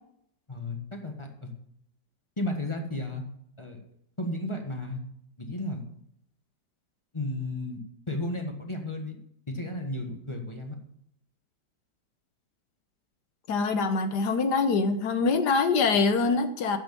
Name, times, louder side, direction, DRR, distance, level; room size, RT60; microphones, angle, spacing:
voice 1, 0.5-1.5 2.4-3.2 3.6-3.8 4.2-5.0 5.4-5.8 7.1-7.8 8.1-9.2 9.5-10.8, left 1 dB, 20° left, 3 dB, 1.1 m, -33 dB
voice 2, 13.5-16.8, left 4 dB, 65° left, 9 dB, 1.4 m, -24 dB
9.2 x 6.5 x 6.9 m, 0.71 s
omnidirectional pair, 2.0 m